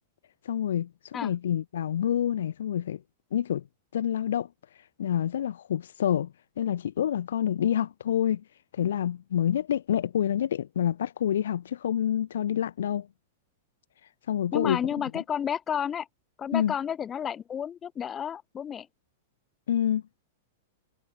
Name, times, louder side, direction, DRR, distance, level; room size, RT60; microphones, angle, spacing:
voice 1, 0.4-3.0 3.3-3.6 3.9-4.5 5.0-8.4 8.7-13.1 14.3-14.8 15.1-15.2 16.5-16.7 19.7-20.0, left 10 dB, 70° left, 2.4 m, -27 dB
voice 2, 14.5-16.1 16.4-18.9, left 8 dB, 25° left, 6.6 m, -31 dB
hypercardioid pair, 105°, 0 cm